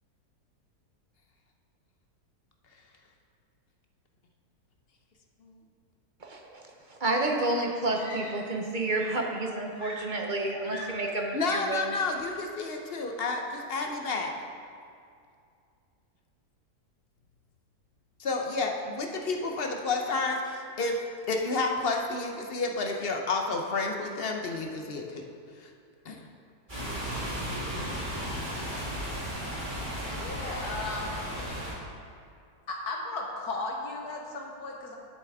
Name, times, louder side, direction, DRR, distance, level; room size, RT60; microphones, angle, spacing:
voice 1, 6.2-6.6 7.0-11.8, right 2 dB, 45° right, 1 dB, 0.6 m, -30 dB
Screaming, 7.9-8.7 8.9-11.2 12.2-12.5, equal, 30° left, 2.5 m, -43 dB
voice 2, 11.3-14.3 18.2-21.0 21.3-25.2 25.6-25.7 26.0-26.3, left 3 dB, 50° left, 2 dB, 0.8 m, -30 dB
sound 1, 26.7-31.7, equal, 30° right, 2.7 m, -34 dB
voice 3, 30.1-31.9 32.7-35.0, left 3 dB, 75° left, 0 dB, 1.6 m, -36 dB
10.5 x 8.1 x 3.5 m, 2.4 s
omnidirectional pair, 1.7 m